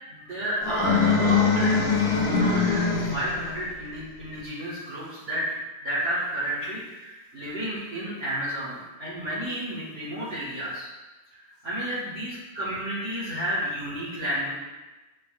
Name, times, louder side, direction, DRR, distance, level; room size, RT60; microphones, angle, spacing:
voice 1, 0.1-5.4 5.8-10.9 11.3-14.5, equal, 25° right, -10 dB, 1.7 m, -31 dB
sound 1, 0.6-3.5, left 5 dB, 70° left, 0.9 m, -22 dB
11.0 x 5.0 x 2.6 m, 1.1 s
omnidirectional pair, 3.4 m